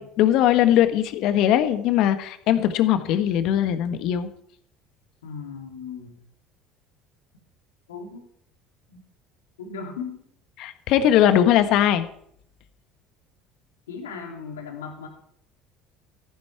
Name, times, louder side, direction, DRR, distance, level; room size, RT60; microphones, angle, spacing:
voice 1, 0.0-4.3 10.6-12.1, left 11 dB, 60° left, 10 dB, 1.3 m, -20 dB
voice 2, 5.2-6.2 7.9-8.3 8.9-9.0 9.6-10.2 13.9-15.1, left 5 dB, 85° left, 2 dB, 2.5 m, -37 dB
14.0 x 10.5 x 4.6 m, 0.68 s
hypercardioid pair, 70°, 0 cm